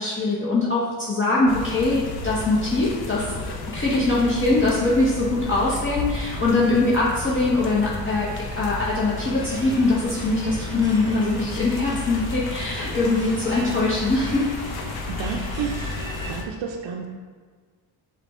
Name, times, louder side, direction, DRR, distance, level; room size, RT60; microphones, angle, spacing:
voice 1, 0.0-3.4 3.7-8.3 8.6-14.4, left 2 dB, 25° left, -7 dB, 0.9 m, -22 dB
sound 1, 1.5-16.4, left 3 dB, 55° left, 0.7 m, -33 dB
voice 2, 6.4-6.7 13.3-13.4 15.1-15.9 16.3-17.1, right 6 dB, 70° right, 1 dB, 0.6 m, -31 dB
sound 2, 9.2-16.3, right 1 dB, 10° right, 1.2 m, -40 dB
5.0 x 2.3 x 4.2 m, 1.5 s
supercardioid pair, 70°, 45 cm